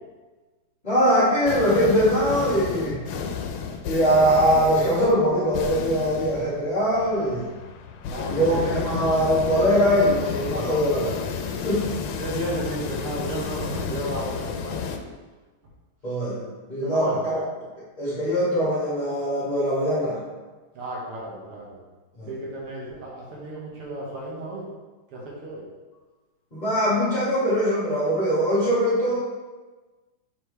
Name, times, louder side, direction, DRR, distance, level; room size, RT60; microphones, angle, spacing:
voice 1, 0.8-3.3 3.8-7.4 8.3-11.8 16.0-16.4 16.7-17.4 18.0-20.2 22.2-22.3 26.5-29.2, equal, 20° left, -11 dB, 1.9 m, -22 dB
sound 1, 1.5-15.0, left 6 dB, 85° left, 1.5 m, -32 dB
voice 2, 8.1-8.8 12.2-14.9 16.4-16.5 16.8-17.3 20.7-21.8 22.3-24.7 25.1-25.6, right 1 dB, 85° right, -3 dB, 2.3 m, -33 dB
7.4 x 4.8 x 3.3 m, 1.3 s
omnidirectional pair, 2.4 m